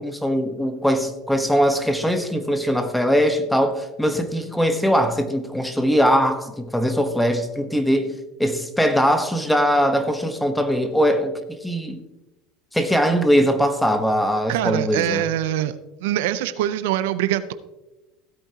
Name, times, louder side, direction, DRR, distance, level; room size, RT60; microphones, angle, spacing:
voice 1, 0.0-12.0 12.7-15.2, equal, 5° left, 8 dB, 1.1 m, -21 dB
voice 2, 14.5-15.7 16.0-17.5, right 12 dB, 80° right, 12 dB, 0.6 m, -23 dB
16.0 x 8.6 x 2.9 m, 1.0 s
supercardioid pair, 115°, 0 cm